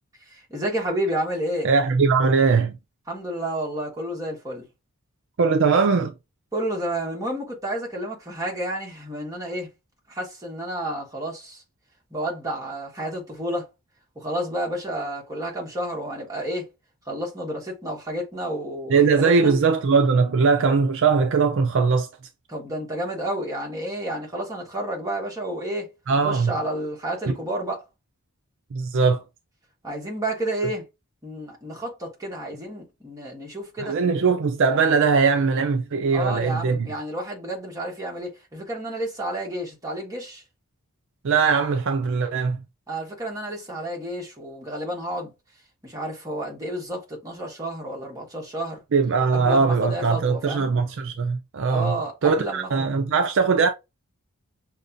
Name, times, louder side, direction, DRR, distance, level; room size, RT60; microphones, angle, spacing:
voice 1, 0.3-1.7 3.1-4.7 6.5-9.7 10.1-11.6 12.1-13.7 14.1-16.7 17.0-19.5 22.5-25.9 26.2-27.8 29.8-30.9 31.2-34.0 36.1-40.4 42.9-45.3 45.8-48.8 49.3-50.7 51.7-52.9, right 1 dB, 15° right, 1.4 m, -30 dB
voice 2, 1.6-2.8 5.4-6.1 18.9-22.1 26.1-26.6 27.3-27.4 28.7-29.2 33.8-36.9 41.2-42.6 48.9-53.7, right 5 dB, 55° right, 0.4 m, -20 dB
6.4 x 2.3 x 2.6 m
head